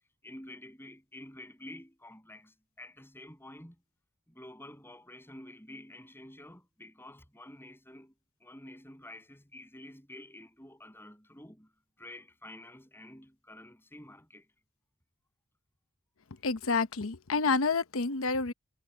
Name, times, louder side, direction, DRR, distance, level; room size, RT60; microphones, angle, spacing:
voice 1, 0.2-3.8 4.3-8.1 8.4-11.7 12.0-14.5, left 1 dB, 10° left, 7.0 m, -49 dB
voice 2, 16.4-18.5, left 4 dB, 75° left, 0.9 m, -29 dB
head